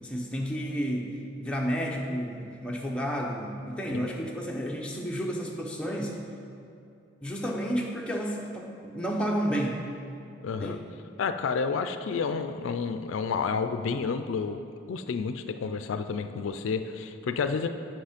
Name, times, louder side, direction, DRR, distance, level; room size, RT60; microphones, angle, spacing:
voice 1, 0.0-6.2 7.2-9.8 10.6-10.8, equal, 5° left, -2 dB, 0.7 m, -31 dB
voice 2, 10.4-10.8 11.2-17.7, left 5 dB, 80° left, 9 dB, 0.4 m, -30 dB
8.0 x 5.7 x 5.0 m, 2.6 s
head